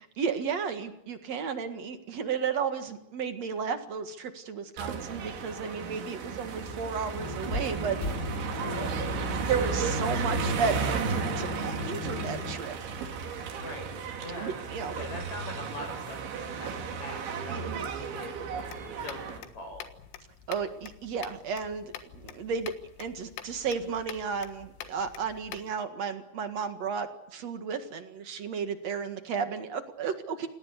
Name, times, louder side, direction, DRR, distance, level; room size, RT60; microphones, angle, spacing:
voice 1, 0.0-8.4 9.2-12.8 14.4-15.1 17.5-17.9 20.5-22.7 23.0-30.5, right 6 dB, 55° right, 7 dB, 2.0 m, -33 dB
sound 1, 4.8-19.4, right 6 dB, 70° right, 5.1 m, -34 dB
sound 2, 7.1-12.5, left 3 dB, 20° left, 4.0 m, -35 dB
voice 2, 8.6-8.9 13.5-13.9 14.1-17.2 17.5-19.9, left 1 dB, 35° left, 4 dB, 8.8 m, -43 dB
sound 3, 18.6-25.7, left 10 dB, 90° left, 4.1 m, -46 dB
28.5 x 18.5 x 8.2 m, 0.85 s
omnidirectional pair, 5.5 m